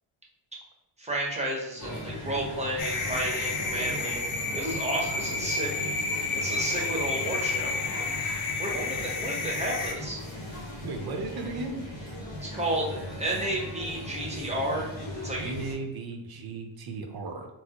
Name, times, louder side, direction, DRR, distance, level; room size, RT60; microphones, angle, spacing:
voice 1, 1.0-4.2 4.5-5.9 6.4-8.0 8.6-10.2 12.4-14.9 15.2-15.5, right 1 dB, 15° right, -3 dB, 0.8 m, -32 dB
sound 1, 1.8-15.7, left 1 dB, 45° left, 1.1 m, -38 dB
sound 2, 2.8-9.9, left 3 dB, 90° left, 0.6 m, -31 dB
voice 2, 10.8-11.9 15.4-17.5, right 3 dB, 50° right, 4 dB, 0.6 m, -35 dB
4.1 x 2.0 x 2.9 m, 0.97 s
cardioid pair, 105°, 48 cm